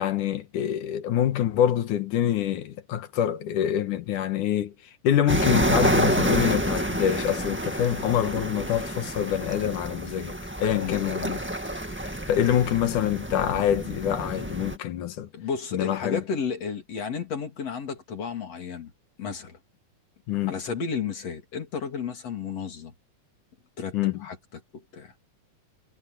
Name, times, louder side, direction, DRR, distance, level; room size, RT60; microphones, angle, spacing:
voice 1, 0.0-4.7 5.0-11.4 12.3-15.3 15.7-16.2 20.3-20.5 23.9-24.2, left 10 dB, 75° left, 2.8 m, -25 dB
sound 1, 5.3-14.8, right 1 dB, 10° right, 0.6 m, -28 dB
voice 2, 10.7-11.1 15.3-18.9 19.2-19.6 20.5-22.9 23.8-24.4 24.7-25.1, left 6 dB, 50° left, 4.1 m, -33 dB
omnidirectional pair, 3.7 m